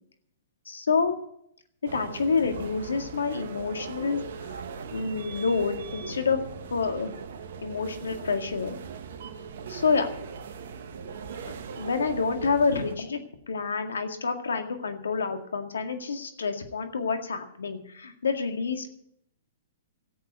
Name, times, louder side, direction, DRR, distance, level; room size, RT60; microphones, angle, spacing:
voice 1, 0.7-1.2 1.9-4.6 4.9-6.4 6.7-7.2 7.6-8.8 9.7-10.1 11.8-18.9, left 5 dB, 80° left, 7 dB, 2.0 m, -28 dB
sound 1, 1.8-12.9, right 6 dB, 65° right, 1.5 m, -40 dB
13.5 x 8.4 x 9.5 m, 0.74 s
hypercardioid pair, 120°, 0 cm